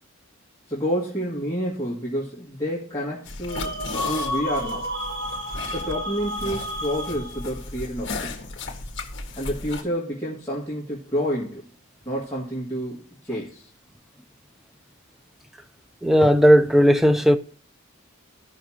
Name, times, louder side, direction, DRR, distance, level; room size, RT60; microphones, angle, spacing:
voice 1, 0.7-3.7 4.1-4.9 5.7-8.4 9.4-11.6 12.0-13.7, equal, 15° left, 1.9 m, -29 dB
sound 1, 3.2-9.8, left 3 dB, 55° left, 1.7 m, -35 dB
sound 2, 3.5-7.6, left 1 dB, 55° right, 1.9 m, -31 dB
voice 2, 16.0-17.4, equal, ahead, 0.4 m, -16 dB
16.0 x 5.7 x 2.8 m
head